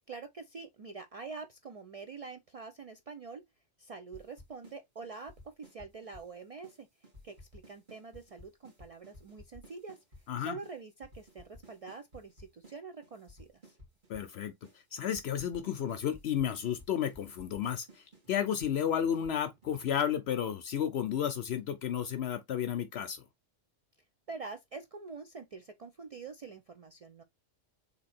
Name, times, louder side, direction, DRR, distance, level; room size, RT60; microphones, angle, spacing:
voice 1, 0.1-3.4 3.8-6.9 7.2-10.0 10.4-13.8 24.3-27.2, right 4 dB, 75° right, 0.3 m, -45 dB
sound 1, 4.1-4.8 5.0-6.3 6.6-6.8 7.0-10.2 10.6-10.7 11.0-12.8 13.0-14.3 14.6-14.8 15.0-20.1, left 1 dB, 40° right, 2.1 m, -55 dB
voice 2, 14.1-14.5 14.9-23.2, left 9 dB, 65° left, 0.7 m, -32 dB
3.7 x 2.8 x 4.2 m
omnidirectional pair, 1.3 m